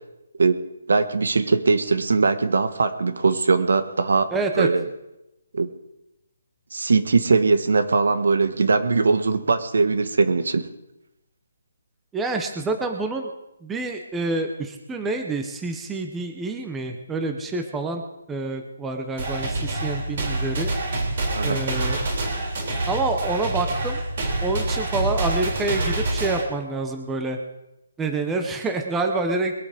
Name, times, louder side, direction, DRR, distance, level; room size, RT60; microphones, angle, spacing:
voice 1, 0.9-4.3 4.5-4.9 5.5-5.7 6.7-10.7 21.3-21.6, right 4 dB, 70° right, 10 dB, 1.4 m, -20 dB
voice 2, 4.3-4.7 12.1-13.3 13.6-18.0 18.3-20.7 21.4-22.0 22.9-24.0 24.4-27.4 28.0-29.5, right 3 dB, 5° right, 4 dB, 0.8 m, -27 dB
sound 1, 19.2-26.4, right 2 dB, 35° right, 3.3 m, -26 dB
21.5 x 8.6 x 5.1 m, 0.91 s
hypercardioid pair, 175°, 0 cm